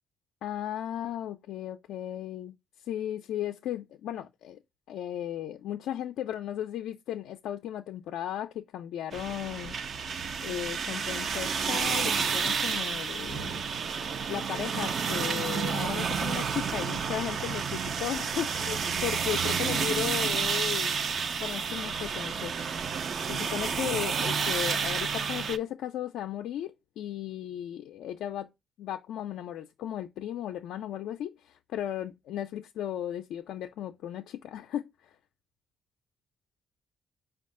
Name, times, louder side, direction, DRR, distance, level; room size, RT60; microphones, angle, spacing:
voice 1, 0.4-2.6 2.8-4.6 4.9-9.7 10.4-13.6 14.3-21.0 21.4-22.5 23.3-28.5 28.8-34.9, left 11 dB, 85° left, 0.4 m, -35 dB
sound 1, 9.1-25.6, right 6 dB, 55° right, 0.4 m, -30 dB
5.2 x 2.3 x 3.6 m
cardioid pair, 90°, 0 cm